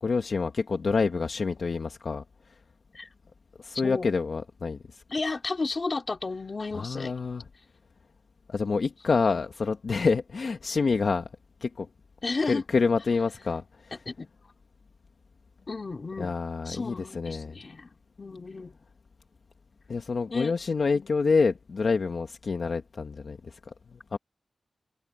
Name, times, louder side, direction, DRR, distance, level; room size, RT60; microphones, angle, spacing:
voice 1, 0.0-2.2 3.6-5.0 6.7-7.5 8.5-11.3 11.6-11.9 12.4-14.0 16.2-17.6 19.9-24.2, left 4 dB, 60° left, 1.2 m, -27 dB
voice 2, 5.1-7.1 12.2-12.6 14.1-14.3 15.7-16.4 16.7-17.9 18.2-18.8 20.3-20.5 20.9-21.1, left 3 dB, 40° left, 2.5 m, -33 dB
wide cardioid pair, 130°, 0 cm